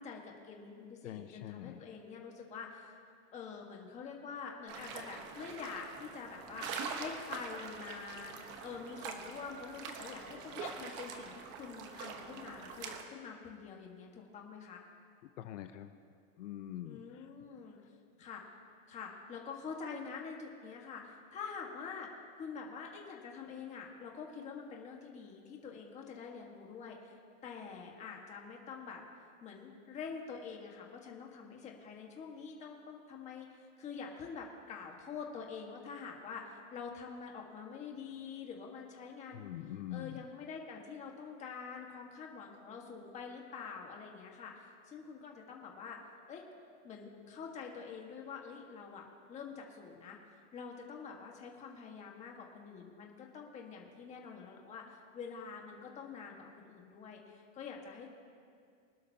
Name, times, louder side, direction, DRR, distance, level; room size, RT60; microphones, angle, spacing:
voice 1, 0.0-3.0 3.3-14.8 16.8-17.8 18.2-18.4 18.9-22.1 22.4-27.2 27.4-29.0 29.4-39.5 39.9-46.0 46.3-46.4 46.8-50.2 50.5-58.2, left 5 dB, 15° left, 0 dB, 1.5 m, -46 dB
voice 2, 1.0-1.8 15.4-16.0 16.4-17.3 39.3-40.2, left 12 dB, 65° left, 8 dB, 0.8 m, -44 dB
sound 1, 4.7-13.0, right 5 dB, 25° right, 1.1 m, -44 dB
25.0 x 12.0 x 2.8 m, 2.3 s
supercardioid pair, 170°, 39 cm